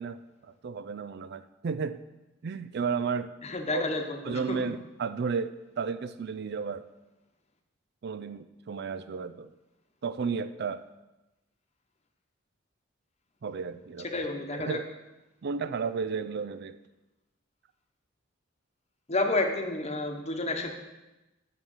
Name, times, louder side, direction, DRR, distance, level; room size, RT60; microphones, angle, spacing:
voice 1, 0.0-2.0 2.4-3.3 3.7-3.8 4.3-6.9 8.0-9.5 10.0-10.9 13.4-14.1 14.5-14.9 15.4-16.8, right 5 dB, 55° right, 12 dB, 0.4 m, -33 dB
voice 2, 3.4-4.6 14.1-14.8 19.1-20.7, left 2 dB, 35° left, 5 dB, 1.0 m, -30 dB
7.2 x 6.3 x 7.1 m, 1.0 s
head